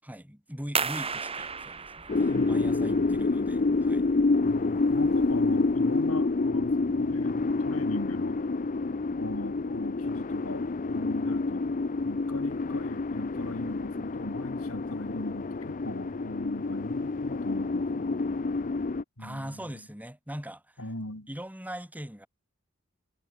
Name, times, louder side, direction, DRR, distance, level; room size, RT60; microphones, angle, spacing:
voice 1, 0.0-4.1 19.2-20.8 21.3-22.3, equal, 10° right, 6.8 m, -41 dB
sound 1, 0.8-6.1, right 5 dB, 25° right, 2.1 m, -36 dB
sound 2, 2.1-19.0, left 3 dB, 40° left, 0.6 m, -28 dB
voice 2, 2.3-3.3 4.4-8.4 9.2-11.7 12.0-18.1 19.2-19.8 20.8-21.3, left 1 dB, 80° left, 6.6 m, -40 dB
head